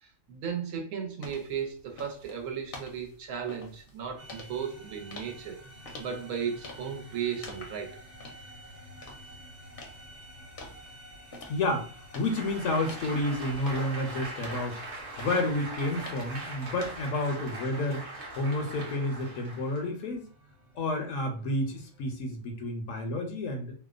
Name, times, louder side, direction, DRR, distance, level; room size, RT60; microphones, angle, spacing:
voice 1, 0.0-5.6 6.0-8.0, right 7 dB, 85° right, 2 dB, 1.1 m, -35 dB
sound 1, 1.2-17.0, left 2 dB, 55° left, 0.7 m, -49 dB
sound 2, 4.2-22.1, equal, 40° right, 0.6 m, -51 dB
voice 2, 11.5-18.0 18.3-20.3 20.7-23.7, left 1 dB, 75° left, 3 dB, 0.9 m, -30 dB
Applause, 12.1-19.9, right 2 dB, 60° right, 1.0 m, -41 dB
2.8 x 2.1 x 2.3 m, 0.41 s
omnidirectional pair, 1.4 m